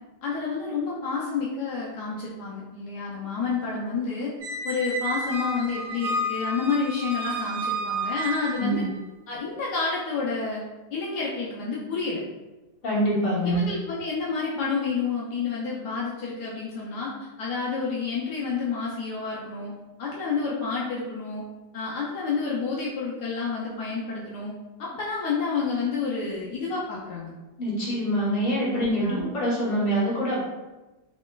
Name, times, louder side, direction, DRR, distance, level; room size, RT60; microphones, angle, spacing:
voice 1, 0.2-4.3 4.6-8.8 9.3-10.6 10.9-12.2 13.4-17.1 17.4-19.7 20.0-21.4 21.7-24.5 24.8-27.3 29.0-29.2, left 5 dB, 70° left, -5 dB, 1.2 m, -29 dB
Squeak, 4.4-8.9, right 1 dB, 70° right, 0.9 m, -31 dB
voice 2, 12.8-13.6 27.6-30.4, equal, 30° left, -7 dB, 1.3 m, -25 dB
4.1 x 3.8 x 2.4 m, 1.1 s
omnidirectional pair, 1.9 m